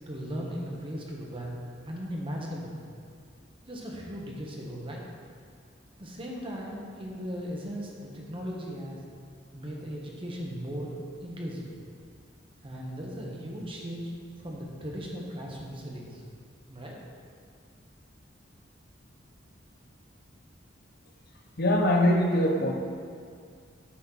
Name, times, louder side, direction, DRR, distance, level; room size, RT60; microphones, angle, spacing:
voice 1, 0.1-1.6 1.8-2.8 3.7-5.0 6.0-9.0 9.5-11.7 12.6-14.1 14.4-16.2 16.7-17.0, equal, 30° right, -2 dB, 1.2 m, -37 dB
voice 2, 21.6-22.7, left 1 dB, 55° left, 2 dB, 0.8 m, -22 dB
8.6 x 4.2 x 5.8 m, 2.1 s
head